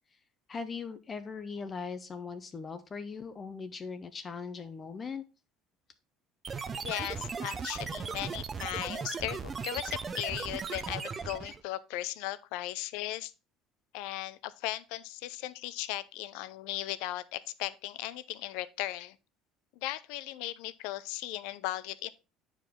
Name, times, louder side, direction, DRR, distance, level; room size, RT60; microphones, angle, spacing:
voice 1, 0.5-5.2, left 5 dB, 25° left, 0.6 m, -39 dB
sound 1, 6.4-11.6, right 5 dB, 25° right, 0.6 m, -37 dB
voice 2, 6.7-13.3 13.9-19.2 19.8-22.1, left 15 dB, 80° left, 0.5 m, -37 dB
8.9 x 4.8 x 3.6 m
cardioid pair, 135°, 0 cm